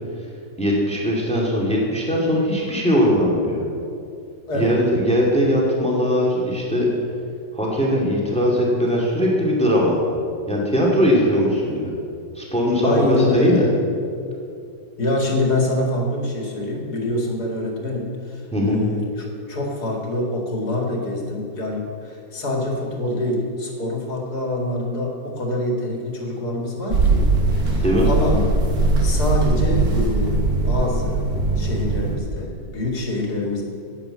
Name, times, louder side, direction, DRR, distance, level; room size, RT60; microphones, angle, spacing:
voice 1, 0.6-3.6 4.5-6.9 7.5-10.0 10.5-11.9 12.3-13.7 18.5-18.8 27.8-28.1, equal, 5° left, -3 dB, 2.3 m, -20 dB
voice 2, 4.5-4.8 12.8-14.0 15.0-27.3 27.6-28.4 29.0-31.2 31.6-33.6, left 1 dB, 55° left, 0 dB, 2.6 m, -25 dB
sound 1, 26.9-32.2, right 3 dB, 55° right, 2.0 m, -20 dB
10.5 x 9.0 x 7.8 m, 2.5 s
omnidirectional pair, 2.1 m